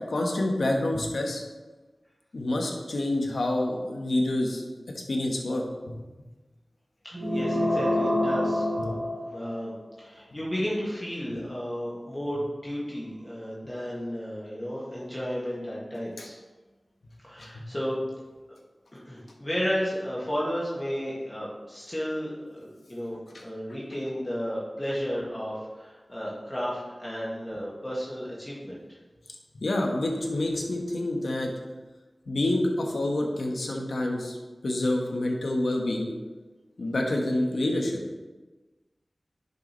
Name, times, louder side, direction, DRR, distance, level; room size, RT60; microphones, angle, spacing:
voice 1, 0.1-1.4 2.3-4.6 5.1-6.0 8.8-9.0 16.2-16.3 17.4-17.6 23.3-23.4 29.5-31.5 32.3-34.4 34.6-36.1 36.8-38.0, left 1 dB, 85° left, 1 dB, 1.5 m, -27 dB
voice 2, 7.0-8.9 9.2-16.4 17.2-18.0 19.0-28.8, equal, 25° left, -6 dB, 2.3 m, -33 dB
sound 1, 7.1-9.8, left 1 dB, 20° right, 2.8 m, -27 dB
10.5 x 6.9 x 3.3 m, 1.2 s
wide cardioid pair, 75°, 0 cm